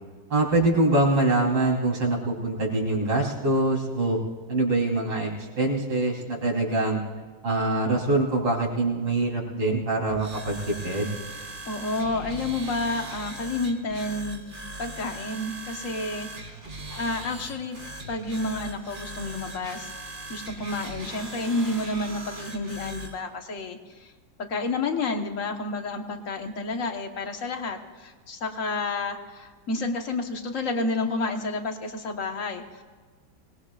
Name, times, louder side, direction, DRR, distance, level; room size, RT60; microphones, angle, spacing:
voice 1, 0.3-4.2 4.5-5.3 5.6-7.0 7.4-11.1, right 2 dB, 75° right, -2 dB, 4.4 m, -24 dB
sound 1, 10.1-23.2, right 2 dB, 30° right, 2.5 m, -39 dB
voice 2, 11.7-14.4 14.8-16.6 16.9-17.8 18.1-19.9 20.3-24.1 24.4-32.8, left 2 dB, 45° left, 4 dB, 1.5 m, -30 dB
25.5 x 20.0 x 2.5 m, 1.4 s
omnidirectional pair, 2.1 m